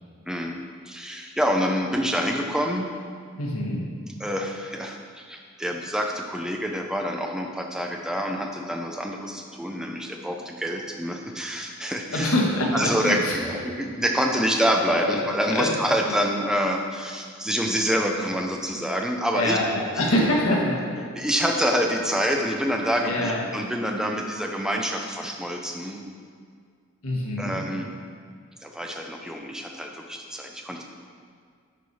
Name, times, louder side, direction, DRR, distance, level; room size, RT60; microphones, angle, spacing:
voice 1, 0.3-0.6 0.8-2.9 4.2-12.3 12.7-19.6 21.1-26.0 27.4-27.9 28.6-30.8, equal, 5° right, 2 dB, 0.4 m, -27 dB
voice 2, 3.4-3.8 12.1-13.4 15.0-15.2 15.5-15.7 19.3-21.0 23.0-23.4 27.0-27.5, left 1 dB, 80° left, -2 dB, 1.4 m, -24 dB
10.0 x 4.6 x 4.2 m, 2.1 s
head